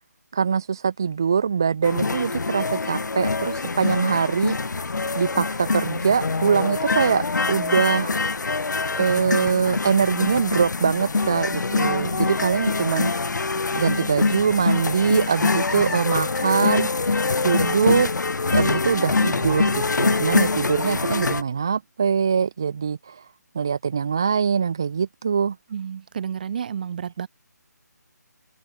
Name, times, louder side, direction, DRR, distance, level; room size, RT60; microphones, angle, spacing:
voice 1, 0.3-4.6 5.1-8.1 9.0-13.4 13.7-18.1 18.5-23.3 23.5-25.6, right 6 dB, 15° right, 0.3 m, -23 dB
sound 1, 1.8-21.4, left 4 dB, 80° left, 1.3 m, -24 dB
voice 2, 11.7-12.2 25.7-27.3, right 8 dB, 30° right, 7.0 m, -31 dB
hypercardioid pair, 175°, 10 cm